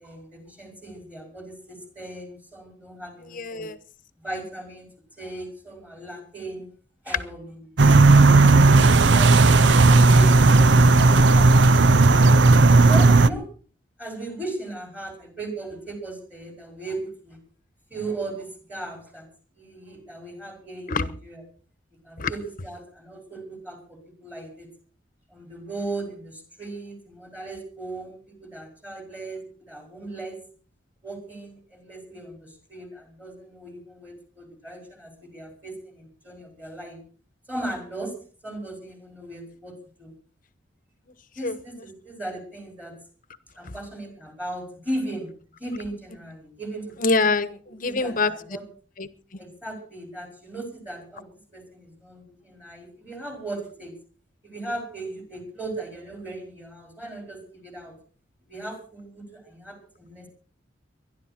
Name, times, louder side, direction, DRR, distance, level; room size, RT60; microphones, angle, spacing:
voice 1, 0.0-3.7 4.2-4.9 5.2-6.7 7.0-11.9 12.8-13.5 14.0-17.4 17.9-19.3 19.6-21.4 22.0-24.7 25.3-30.4 31.0-37.0 37.5-38.2 38.4-40.1 41.4-43.0 43.6-45.3 45.6-46.9 47.9-48.6 49.4-53.9 54.4-57.9 58.5-60.3, right 2 dB, 10° right, 3 dB, 5.5 m, -37 dB
voice 2, 3.2-3.8 20.9-21.1 22.2-22.3 41.4-41.5 43.6-43.7 47.0-48.3 49.0-49.4, left 3 dB, 50° left, 14 dB, 1.1 m, -25 dB
sound 1, 7.8-13.3, right 3 dB, 75° right, 0.7 m, -14 dB
24.0 x 11.5 x 4.4 m, 0.40 s
head